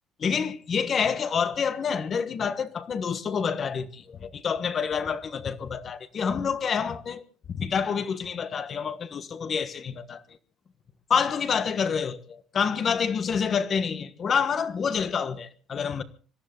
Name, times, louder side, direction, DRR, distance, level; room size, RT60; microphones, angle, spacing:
voice 1, 0.2-7.2 7.5-10.2 11.1-16.0, left 6 dB, 30° left, 1.3 m, -28 dB
26.0 x 14.0 x 3.9 m
cardioid pair, 160°, 0 cm